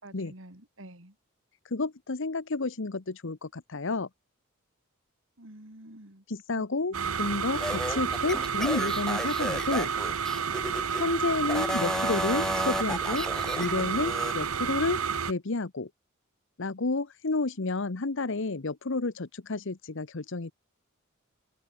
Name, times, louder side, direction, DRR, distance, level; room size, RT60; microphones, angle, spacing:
voice 1, 0.0-1.2 5.4-6.2 6.5-7.5, right 1 dB, 65° right, 4.3 m, -49 dB
voice 2, 1.6-4.1 6.3-9.9 10.9-13.3 13.6-15.9 16.6-20.5, left 3 dB, 60° left, 1.0 m, -30 dB
sound 1, 6.9-15.3, right 6 dB, 90° right, 1.1 m, -30 dB
sound 2, 7.5-11.0 11.4-14.4, left 1 dB, 5° left, 0.5 m, -33 dB
open air
head